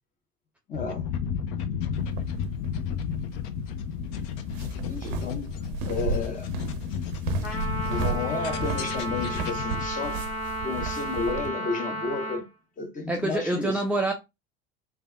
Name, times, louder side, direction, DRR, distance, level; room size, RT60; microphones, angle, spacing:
sound 1, 0.7-9.9, left 7 dB, 55° left, 0.5 m, -32 dB
voice 1, 0.7-1.1 4.8-5.6 5.8-6.5 7.9-10.2 10.6-12.5 12.8-13.8, left 4 dB, 25° left, 0.9 m, -32 dB
sound 2, 2.0-11.5, right 7 dB, 55° right, 0.5 m, -35 dB
Trumpet, 7.4-12.4, equal, 80° left, 0.9 m, -33 dB
voice 2, 13.1-14.1, right 2 dB, 5° right, 0.3 m, -26 dB
3.2 x 2.2 x 2.3 m
figure-of-eight pair, 70°, 30 cm